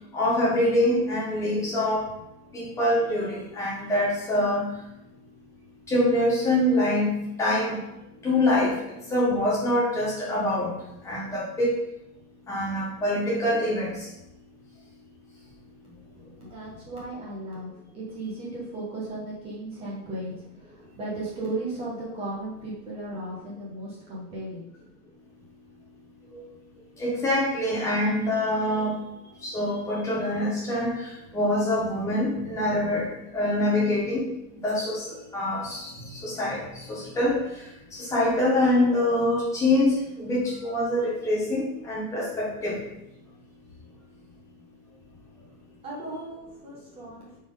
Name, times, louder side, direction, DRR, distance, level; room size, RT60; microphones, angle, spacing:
voice 1, 0.1-2.1 2.5-4.7 5.9-7.8 8.2-8.8 9.1-10.7 11.0-11.7 12.5-14.1 26.3-26.4 27.0-29.0 29.4-33.1 33.3-34.2 34.6-35.0 35.3-36.6 36.9-37.4 37.9-42.8, left 1 dB, 5° left, -6 dB, 1.1 m, -25 dB
voice 2, 16.2-24.7 45.1-45.2 45.8-47.4, right 2 dB, 10° right, -5 dB, 1.4 m, -36 dB
6.9 x 4.5 x 3.8 m, 0.88 s
supercardioid pair, 170°, 46 cm